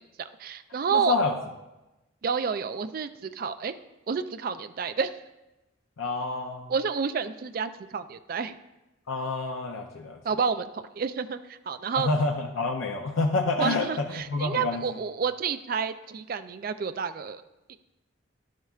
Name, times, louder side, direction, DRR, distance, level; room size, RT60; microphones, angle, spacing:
voice 1, 0.2-1.2 2.2-3.7 4.1-5.2 6.7-8.6 10.2-12.1 13.6-17.4, right 6 dB, 45° right, 11 dB, 0.3 m, -30 dB
voice 2, 0.9-1.3 6.0-6.7 9.1-10.2 12.0-14.8, left 3 dB, 85° left, 2 dB, 0.6 m, -28 dB
11.0 x 7.4 x 2.4 m, 1.0 s
head